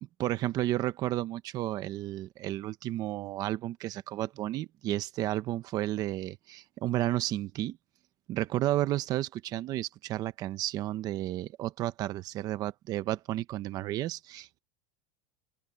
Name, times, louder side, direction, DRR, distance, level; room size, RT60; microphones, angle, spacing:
voice 1, 0.2-7.8 8.3-14.6, right 14 dB, 35° right, 0.7 m, -32 dB
open air
supercardioid pair, 160°, 12 cm